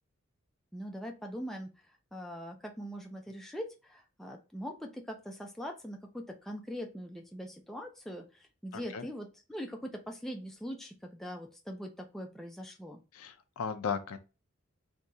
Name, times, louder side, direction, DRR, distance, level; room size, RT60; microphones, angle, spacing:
voice 1, 0.7-13.0, equal, ahead, 0.3 m, -42 dB
voice 2, 8.7-9.1 13.1-14.2, left 6 dB, 80° left, 0.5 m, -36 dB
2.8 x 2.7 x 3.3 m
head